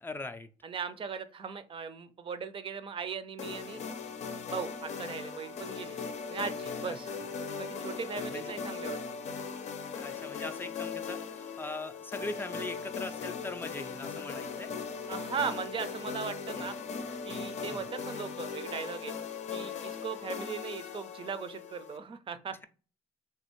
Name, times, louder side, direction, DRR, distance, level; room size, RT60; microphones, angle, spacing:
voice 1, 0.0-0.5 6.9-7.0 8.3-8.6 10.0-14.7 17.6-17.9, left 2 dB, 15° left, 7 dB, 0.4 m, -41 dB
voice 2, 0.6-3.8 4.5-6.0 6.3-7.1 7.6-9.0 15.1-16.7 17.3-19.1 19.5-22.6, right 6 dB, 45° right, 11 dB, 0.5 m, -38 dB
sound 1, 3.4-22.0, left 5 dB, 65° left, 0.6 m, -39 dB
3.3 x 2.4 x 3.0 m, 0.36 s
cardioid pair, 85°, 13 cm